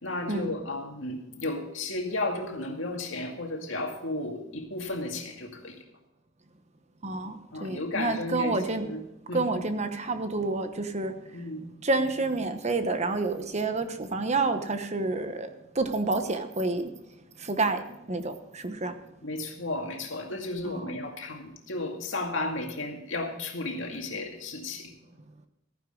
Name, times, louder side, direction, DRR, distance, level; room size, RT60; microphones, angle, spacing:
voice 1, 0.0-5.8 7.5-9.5 11.3-11.7 19.2-24.9, left 2 dB, 70° left, 2 dB, 2.2 m, -34 dB
voice 2, 7.0-8.9 9.3-11.1 11.8-16.9 17.4-18.9 20.6-21.0, right 3 dB, 35° right, 8 dB, 1.0 m, -29 dB
14.5 x 10.0 x 3.8 m, 0.91 s
head